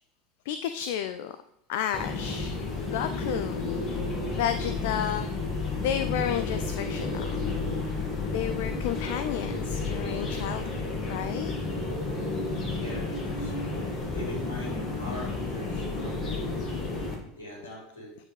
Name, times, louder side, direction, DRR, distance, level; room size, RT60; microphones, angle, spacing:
voice 1, 0.5-1.4 1.7-2.6 2.8-3.6 4.3-5.3 5.8-7.4 8.3-11.5, left 10 dB, 60° left, 10 dB, 0.3 m, -32 dB
sound 1, 1.9-17.1, left 3 dB, 35° left, 1.6 m, -31 dB
voice 2, 12.8-16.4 17.3-18.2, left 1 dB, 75° left, -4 dB, 2.4 m, -42 dB
8.5 x 4.7 x 3.1 m, 0.79 s
figure-of-eight pair, 75°, 0 cm